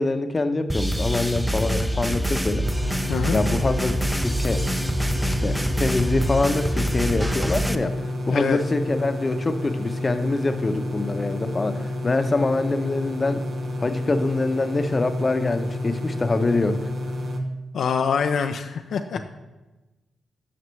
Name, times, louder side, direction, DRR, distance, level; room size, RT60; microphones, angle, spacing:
voice 1, 0.0-2.7 3.3-4.7 5.2-8.0 8.3-13.4 13.8-16.8 19.2-19.3, left 3 dB, 35° left, 8 dB, 0.8 m, -25 dB
sound 1, 0.7-7.7, equal, 5° right, 0.6 m, -25 dB
sound 2, 2.6-17.4, left 1 dB, 60° right, 1.0 m, -30 dB
voice 2, 3.1-3.4 8.3-8.6 17.7-19.2, left 6 dB, 70° left, 5 dB, 0.4 m, -24 dB
11.0 x 5.8 x 3.2 m, 1.1 s
supercardioid pair, 50°, 0 cm